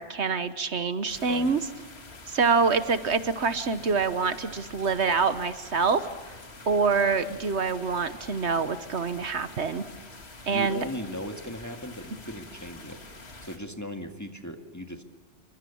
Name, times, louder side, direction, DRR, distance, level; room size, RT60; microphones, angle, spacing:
voice 1, 0.0-1.6 2.3-6.3 6.7-9.8 10.5-10.8, right 4 dB, 65° right, 11 dB, 1.4 m, -26 dB
sound 1, 1.1-13.6, left 2 dB, 60° left, 2.5 m, -46 dB
voice 2, 10.5-13.0 13.4-15.0, equal, 15° left, 5 dB, 1.9 m, -37 dB
28.0 x 24.5 x 7.1 m, 1.2 s
omnidirectional pair, 1.3 m